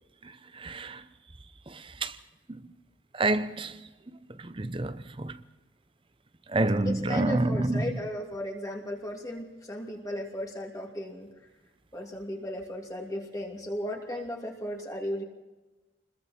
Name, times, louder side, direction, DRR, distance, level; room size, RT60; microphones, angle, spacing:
voice 1, 0.6-1.0 2.0-2.1 3.2-3.7 4.4-5.3 6.5-7.8, right 2 dB, 25° right, 0.7 m, -27 dB
voice 2, 6.8-11.3 11.9-15.2, equal, 20° left, 2.8 m, -35 dB
29.0 x 21.5 x 4.4 m
head